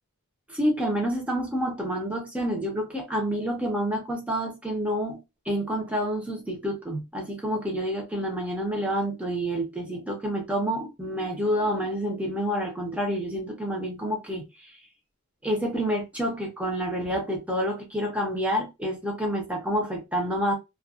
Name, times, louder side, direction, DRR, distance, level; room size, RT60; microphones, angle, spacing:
voice 1, 0.5-5.2 5.5-14.4 15.4-20.6, equal, 5° right, 0.7 m, -28 dB
2.5 x 2.2 x 2.3 m
head